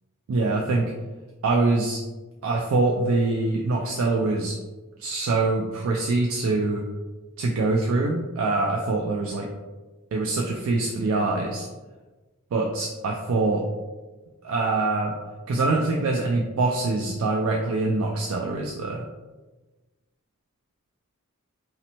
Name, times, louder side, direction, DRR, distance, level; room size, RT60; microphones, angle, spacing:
voice 1, 0.3-0.9 1.4-2.0 2.4-4.6 5.0-6.8 7.4-9.5 10.1-11.7 12.5-13.6 14.4-15.1 15.5-19.0, right 3 dB, 70° right, -1 dB, 0.3 m, -24 dB
2.7 x 2.1 x 2.8 m, 1.2 s
head